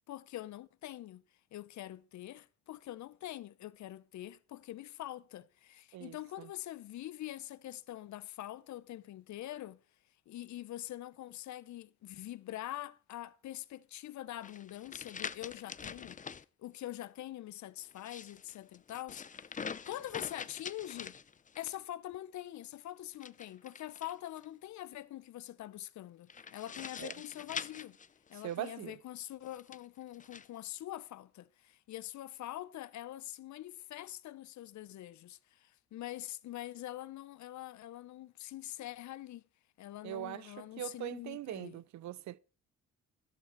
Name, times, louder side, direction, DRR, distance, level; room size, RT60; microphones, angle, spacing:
voice 1, 0.1-1.2 1.5-9.8 10.3-16.2 16.6-21.2 21.6-28.0 28.3-39.4 39.8-41.8, left 14 dB, 70° left, 0.8 m, -44 dB
voice 2, 5.9-6.5 27.0-27.1 28.4-29.0 40.0-42.4, right 13 dB, 70° right, 0.6 m, -41 dB
sound 1, 14.4-16.4 17.9-21.8 23.1-24.5 26.3-28.7 29.5-30.5, left 6 dB, 25° left, 0.5 m, -45 dB
12.5 x 11.5 x 4.5 m
cardioid pair, 90°, 30 cm